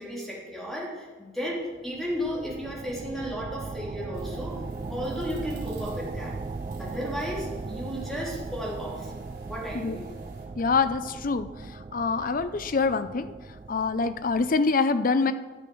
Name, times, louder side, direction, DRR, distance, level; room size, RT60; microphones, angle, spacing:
voice 1, 0.0-4.6 4.9-6.3 6.8-9.1 9.4-10.1, equal, ahead, -5 dB, 3.2 m, -34 dB
sound 1, 1.8-14.6, right 3 dB, 35° right, 0.4 m, -38 dB
sound 2, 4.1-10.5, right 4 dB, 55° right, 3.4 m, -48 dB
voice 2, 10.6-11.5 11.9-13.3 13.7-15.3, left 4 dB, 50° left, 12 dB, 0.6 m, -25 dB
12.0 x 7.0 x 6.2 m, 1.3 s
head